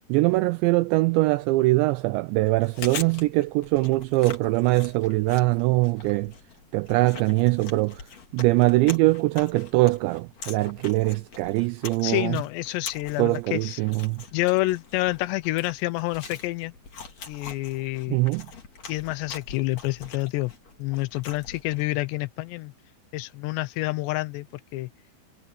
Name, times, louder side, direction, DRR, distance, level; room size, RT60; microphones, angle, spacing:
voice 1, 0.1-6.3 6.7-8.1 8.3-12.4 13.2-14.2 18.1-18.5, right 21 dB, 90° right, 2.5 m, -22 dB
Chewing mastication, 2.5-22.0, left 5 dB, 40° left, 3.3 m, -43 dB
voice 2, 12.0-13.8 14.3-16.7 17.3-18.2 18.9-20.5 20.8-22.7 23.1-24.5 24.7-24.9, left 19 dB, 80° left, 2.7 m, -28 dB
omnidirectional pair, 5.6 m